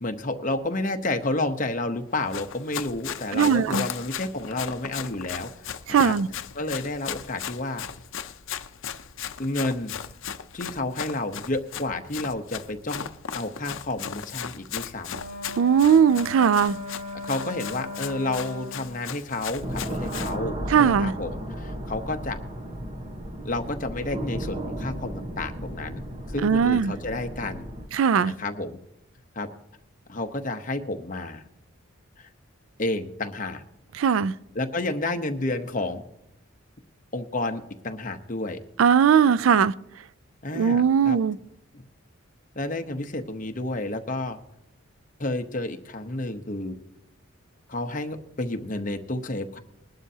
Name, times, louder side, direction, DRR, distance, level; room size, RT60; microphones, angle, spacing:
voice 1, 0.0-5.5 5.9-6.1 6.5-7.9 9.4-9.9 10.5-13.1 13.3-15.2 17.2-22.4 23.4-26.0 26.3-27.7 28.2-28.8 29.3-29.5 30.1-31.4 32.2-32.3 32.8-33.6 34.5-36.1 37.1-38.6 40.4-41.2 41.7-41.8 42.5-44.4 45.2-46.8 47.7-49.6, left 2 dB, 40° left, 0.9 m, -30 dB
Run, 2.1-20.4, left 8 dB, 70° left, 0.6 m, -37 dB
voice 2, 3.3-3.9 5.9-6.3 15.6-16.8 20.7-21.1 26.4-26.9 27.9-28.3 33.9-34.3 38.8-39.7 40.5-41.4, right 7 dB, 75° right, 0.4 m, -19 dB
Wind instrument woodwind instrument, 15.1-19.0, left 3 dB, 45° right, 3.2 m, -38 dB
sound 1, 19.6-27.9, equal, 30° right, 1.1 m, -34 dB
21.0 x 11.5 x 2.8 m
head